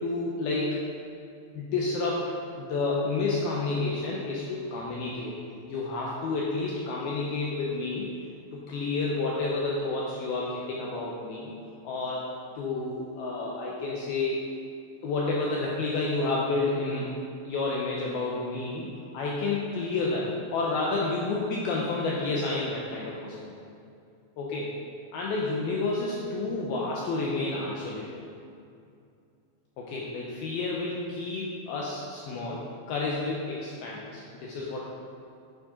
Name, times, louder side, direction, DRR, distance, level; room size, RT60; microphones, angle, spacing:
voice 1, 0.0-0.8 1.5-5.4 5.7-8.2 8.5-11.5 11.8-12.3 12.6-14.5 15.0-17.1 17.4-23.5 24.4-24.8 25.1-28.2 29.8-32.6 32.9-34.9, left 3 dB, 80° left, -4 dB, 2.2 m, -30 dB
9.4 x 8.9 x 3.8 m, 2.4 s
omnidirectional pair, 5.5 m